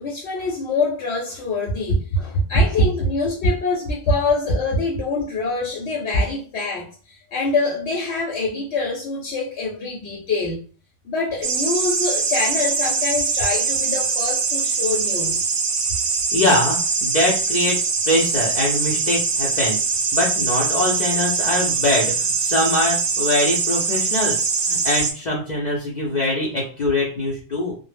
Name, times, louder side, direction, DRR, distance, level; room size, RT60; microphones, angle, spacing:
voice 1, 0.0-10.6 11.0-15.5, left 4 dB, 85° left, 0.9 m, -25 dB
sound 1, 11.4-25.1, right 5 dB, 60° right, 0.7 m, -22 dB
voice 2, 16.3-17.8 18.1-19.8 20.1-24.4 24.7-27.8, left 1 dB, 50° left, 0.6 m, -22 dB
2.1 x 2.0 x 3.2 m
omnidirectional pair, 1.1 m